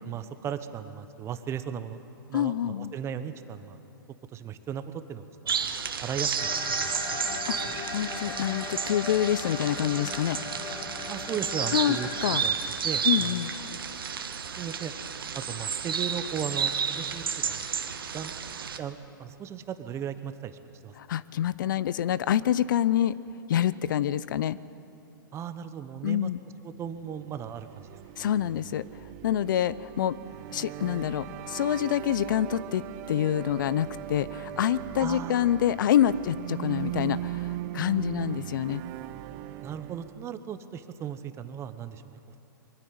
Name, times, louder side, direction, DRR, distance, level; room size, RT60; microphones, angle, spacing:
voice 1, 0.0-2.0 2.3-3.8 4.3-5.5 6.0-6.9 7.3-7.8 11.1-12.1 12.4-12.5 12.8-13.4 14.6-14.9 15.3-17.7 18.1-18.3 18.8-20.9 25.3-26.3 26.6-28.0 35.0-35.5 39.6-42.4, right 8 dB, 25° right, 11 dB, 1.1 m, -37 dB
voice 2, 2.3-2.9 7.5-7.6 7.9-10.4 11.7-12.4 13.0-13.5 21.0-23.2 23.5-24.6 26.0-26.4 28.2-28.9 29.2-30.2 30.5-38.8, left 11 dB, 60° left, 18 dB, 0.6 m, -26 dB
sound 1, 5.5-18.8, right 6 dB, 80° right, 1.5 m, -31 dB
sound 2, 6.4-12.4, left 5 dB, 35° left, 2.1 m, -38 dB
sound 3, 27.3-40.3, right 15 dB, 40° right, 0.7 m, -39 dB
23.0 x 15.5 x 9.5 m, 2.8 s
hypercardioid pair, 120°, 12 cm